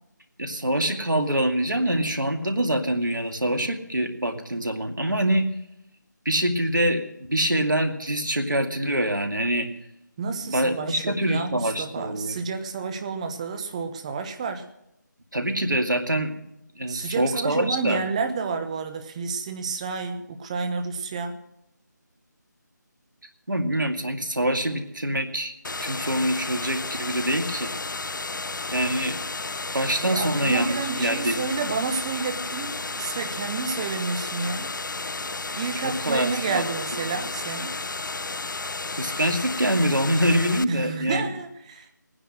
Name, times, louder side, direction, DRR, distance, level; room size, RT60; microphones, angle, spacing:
voice 1, 0.4-5.5 6.2-9.7 10.4-12.3 15.3-16.3 16.7-18.0 23.5-25.5 25.8-27.7 28.7-29.2 29.7-31.4 35.8-36.6 39.0-41.2, right 1 dB, 85° right, 5 dB, 2.3 m, -25 dB
voice 2, 10.2-14.6 16.9-21.3 30.0-34.7 35.6-37.7 40.7-41.9, right 5 dB, 20° right, 7 dB, 1.1 m, -30 dB
sound 1, 25.6-40.6, left 3 dB, 80° left, 0.5 m, -32 dB
17.0 x 9.9 x 6.3 m, 0.83 s
figure-of-eight pair, 160°, 10 cm